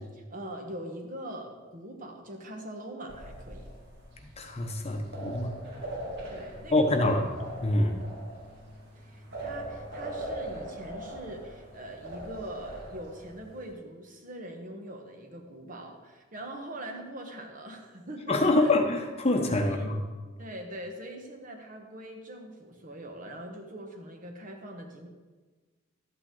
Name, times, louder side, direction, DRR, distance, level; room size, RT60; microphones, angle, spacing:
voice 1, 0.0-3.7 6.3-7.1 7.9-8.1 8.9-18.7 19.6-19.9 20.4-25.1, right 1 dB, 40° right, 3 dB, 1.3 m, -42 dB
sound 1, 3.1-13.7, right 1 dB, 60° right, 2.3 m, -41 dB
voice 2, 4.4-5.5 6.7-7.2 7.6-8.0 18.3-20.0, left 2 dB, 30° left, 4 dB, 1.0 m, -25 dB
12.5 x 8.9 x 3.9 m, 1.3 s
head